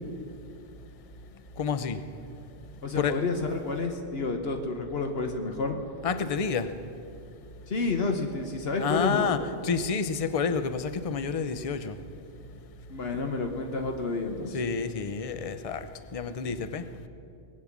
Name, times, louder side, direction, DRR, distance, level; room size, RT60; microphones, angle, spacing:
voice 1, 1.6-2.0 3.0-3.1 6.0-6.7 8.8-9.4 9.6-12.0 14.5-15.8 16.1-16.8, left 5 dB, 40° left, 10 dB, 0.6 m, -29 dB
voice 2, 2.8-5.8 7.7-9.4 12.9-14.6, left 3 dB, 60° left, 4 dB, 1.2 m, -30 dB
20.5 x 8.6 x 7.3 m, 2.6 s
omnidirectional pair, 1.2 m